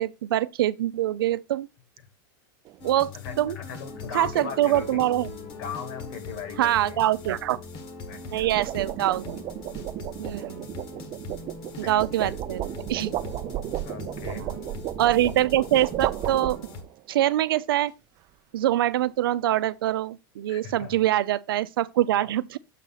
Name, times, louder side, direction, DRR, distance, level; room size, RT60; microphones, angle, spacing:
voice 1, 0.0-1.7 2.8-3.1 3.4-3.6 4.1-5.3 6.6-7.6 8.3-9.4 10.2-10.7 11.8-13.1 14.4-14.6 15.0-16.6 17.1-17.9 18.5-22.6, right 13 dB, 85° right, 0.6 m, -24 dB
sound 1, 2.7-3.0 8.1-17.0, right 14 dB, 35° right, 0.4 m, -34 dB
sound 2, 2.8-16.8, left 3 dB, 45° left, 1.4 m, -42 dB
voice 2, 3.1-5.0 5.6-7.0 8.1-8.5 11.8-11.9 12.2-12.3 13.8-14.5 20.5-21.0, left 7 dB, 65° left, 2.5 m, -38 dB
sound 3, 3.8-16.2, left 4 dB, 85° left, 5.7 m, -45 dB
7.3 x 5.6 x 4.0 m
supercardioid pair, 135°, 12 cm